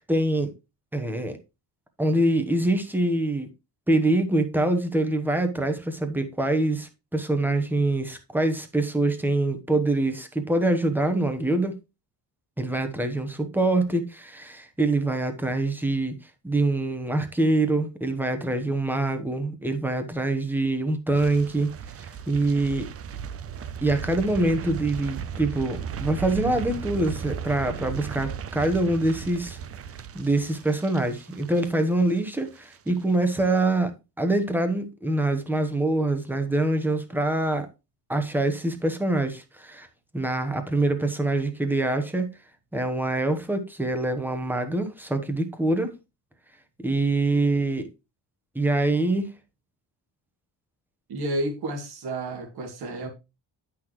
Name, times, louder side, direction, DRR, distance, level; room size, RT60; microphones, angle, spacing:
voice 1, 0.1-0.5 0.9-1.4 2.0-3.5 3.9-11.8 12.6-16.1 16.4-21.7 22.0-22.9 23.8-29.6 30.1-37.7 38.1-39.9 40.1-42.3 42.7-46.0 46.8-47.9 48.5-49.3, right 2 dB, 5° right, 1.1 m, -25 dB
sound 1, 21.1-32.3 32.6-32.9 33.2-33.3, right 8 dB, 35° right, 0.6 m, -36 dB
voice 2, 51.1-53.1, right 1 dB, 65° right, 2.6 m, -31 dB
10.5 x 6.0 x 3.1 m
cardioid pair, 180°, 41 cm